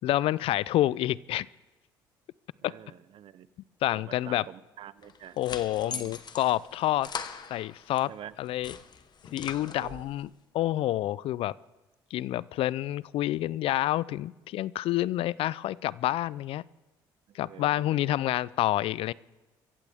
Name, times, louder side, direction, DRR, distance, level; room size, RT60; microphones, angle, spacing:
voice 1, 0.0-1.5 2.6-2.7 3.8-4.4 5.4-7.1 7.5-8.1 8.4-8.8 9.3-10.3 10.5-11.5 12.1-16.6 17.3-19.1, left 14 dB, 65° left, 22 dB, 0.4 m, -28 dB
voice 2, 2.6-3.5 3.9-5.4 5.8-6.1 8.1-8.3 9.6-10.1 17.3-18.2, right 11 dB, 60° right, 17 dB, 0.8 m, -47 dB
sound 1, 5.0-8.1 8.4-10.2, left 6 dB, 45° left, 1.3 m, -41 dB
25.0 x 15.0 x 3.5 m, 1.1 s
hypercardioid pair, 65°, 10 cm